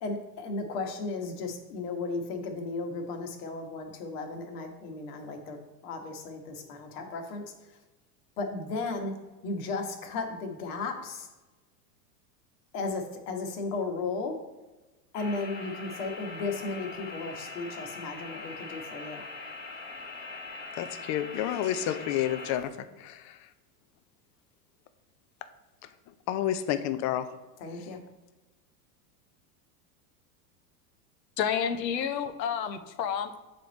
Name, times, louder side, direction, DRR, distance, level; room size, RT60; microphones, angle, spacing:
voice 1, 0.0-7.8 8.4-11.3 12.7-14.4 15.1-19.3 27.6-28.0, left 3 dB, 65° left, 4 dB, 1.3 m, -35 dB
sound 1, 15.1-22.6, left 3 dB, 20° left, 1.1 m, -42 dB
voice 2, 20.8-22.7 23.0-23.5 25.8-25.9 26.3-27.3, left 11 dB, 35° left, 11 dB, 0.5 m, -30 dB
voice 3, 31.4-33.4, left 8 dB, 85° left, 9 dB, 0.8 m, -30 dB
7.5 x 3.5 x 4.0 m, 1.1 s
hypercardioid pair, 105°, 49 cm